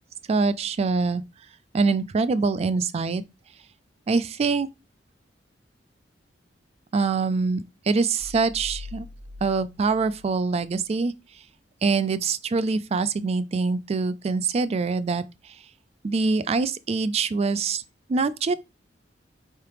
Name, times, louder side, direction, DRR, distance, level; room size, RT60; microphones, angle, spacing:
voice 1, 0.3-1.2 1.7-3.2 4.1-4.7 6.9-7.6 7.9-9.1 9.4-11.1 11.8-15.6 16.0-17.8 18.1-18.5, right 4 dB, 35° right, 0.3 m, -24 dB
sound 1, 8.2-11.1, left 3 dB, 70° right, 1.1 m, -43 dB
4.6 x 3.3 x 3.0 m
head